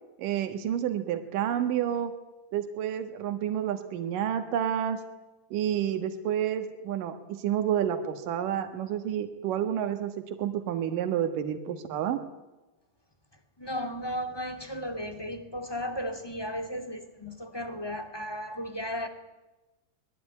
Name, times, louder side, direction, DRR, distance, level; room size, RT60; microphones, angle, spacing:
voice 1, 0.2-2.1 2.5-5.0 5.5-10.1 10.4-12.2, right 10 dB, 80° right, 8 dB, 3.1 m, -29 dB
voice 2, 13.6-19.1, equal, 10° left, 7 dB, 1.8 m, -35 dB
24.0 x 20.5 x 9.5 m, 1.1 s
omnidirectional pair, 3.8 m